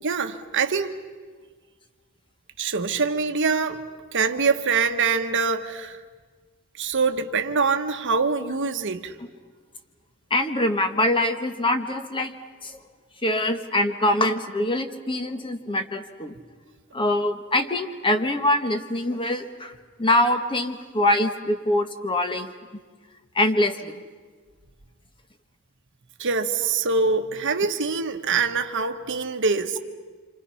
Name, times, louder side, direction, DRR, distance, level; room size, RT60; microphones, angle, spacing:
voice 1, 0.0-0.9 2.6-3.8 4.1-6.0 6.8-9.1 26.2-29.8, right 4 dB, 60° right, 1.3 m, -24 dB
voice 2, 10.3-12.3 12.6-12.8 13.2-16.3 16.9-19.7 20.0-22.5 23.3-23.9, left 1 dB, 25° left, 1.4 m, -24 dB
28.0 x 25.5 x 5.7 m
head